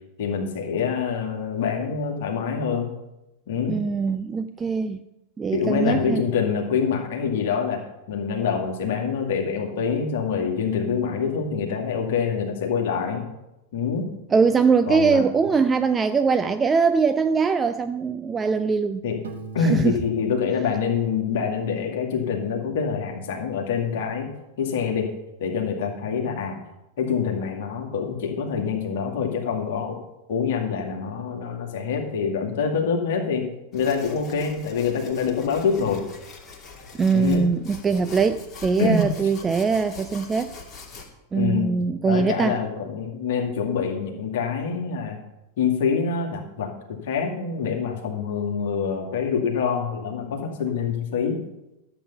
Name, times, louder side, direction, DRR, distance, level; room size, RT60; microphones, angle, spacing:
voice 1, 0.2-2.9 3.5-3.8 5.5-13.2 13.7-14.1 14.9-15.2 19.0-19.2 19.5-24.3 24.6-25.1 25.4-26.6 27.0-30.0 30.3-33.5 33.7-36.0 37.1-37.5 38.8-39.1 41.3-41.7 42.1-45.2 45.6-46.7 47.0-51.4, left 6 dB, 55° left, 1 dB, 2.2 m, -25 dB
voice 2, 3.7-5.0 5.4-6.2 14.3-19.0 19.6-20.0 37.0-40.5 41.3-42.6, right 5 dB, 20° right, 10 dB, 0.5 m, -22 dB
Piano, 19.2-22.0, right 5 dB, 65° right, 1.4 m, -42 dB
sound 1, 33.7-41.1, left 4 dB, 25° left, 2.7 m, -43 dB
13.5 x 8.2 x 5.6 m, 0.94 s
figure-of-eight pair, 90°, 0 cm